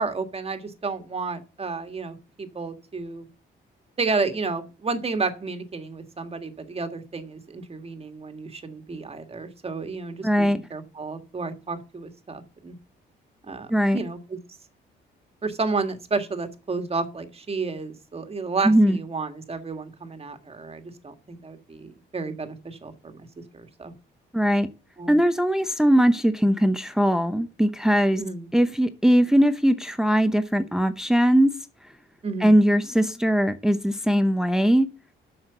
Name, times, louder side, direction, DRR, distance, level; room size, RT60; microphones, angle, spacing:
voice 1, 0.0-3.3 4.0-12.7 13.4-14.4 15.4-23.2 23.5-23.9 25.0-25.2 28.2-28.5 32.2-32.6, right 4 dB, 30° right, 1.7 m, -31 dB
voice 2, 10.2-10.6 13.7-14.0 18.6-19.0 24.3-24.7 25.1-28.2 28.5-31.5 32.4-34.9, equal, 5° right, 0.7 m, -20 dB
7.6 x 6.5 x 6.8 m
cardioid pair, 90°, 20 cm